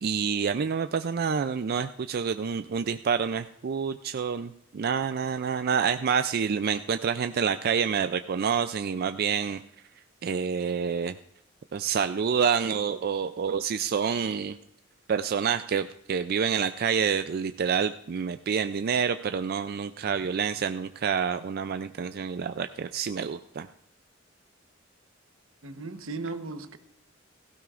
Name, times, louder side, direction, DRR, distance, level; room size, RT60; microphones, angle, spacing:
voice 1, 0.0-9.6 10.2-11.1 11.7-14.6 15.1-23.7, right 6 dB, 50° right, 10 dB, 0.4 m, -28 dB
voice 2, 25.6-26.8, right 3 dB, 80° right, 8 dB, 1.1 m, -36 dB
17.0 x 15.5 x 2.5 m, 0.77 s
head